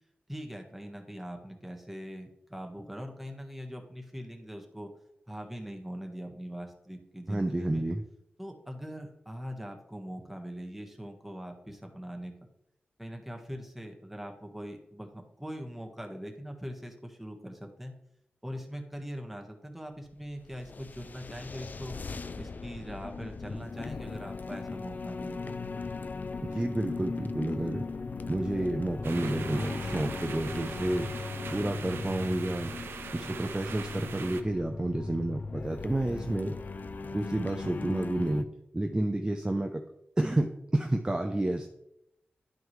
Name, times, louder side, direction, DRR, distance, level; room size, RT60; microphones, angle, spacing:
voice 1, 0.3-4.9 5.3-7.8 8.4-12.3 13.0-17.9 18.4-22.0 22.4-25.6, equal, 5° right, 3 dB, 1.4 m, -42 dB
voice 2, 7.3-8.0 26.4-27.8 28.3-31.1 31.5-32.7 33.1-36.6 37.1-38.5 38.7-39.8 40.2-41.7, right 1 dB, 20° right, 4 dB, 0.6 m, -30 dB
sound 1, 20.1-38.4, left 4 dB, 50° left, 0.4 m, -38 dB
sound 2, 29.0-34.4, right 5 dB, 90° right, 0.5 m, -42 dB
11.0 x 4.7 x 3.2 m, 0.81 s
cardioid pair, 60°, 4 cm